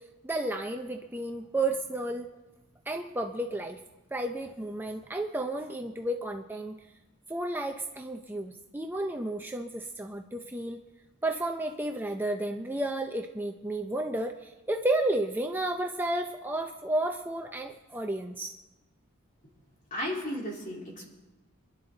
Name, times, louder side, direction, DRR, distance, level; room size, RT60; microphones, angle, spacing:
voice 1, 0.2-2.3 2.9-3.8 4.1-6.8 7.3-10.8 11.2-18.5, right 1 dB, 10° right, 3 dB, 0.6 m, -32 dB
voice 2, 19.9-21.0, equal, 40° left, -3 dB, 3.8 m, -34 dB
26.5 x 11.5 x 4.0 m, 1.1 s
head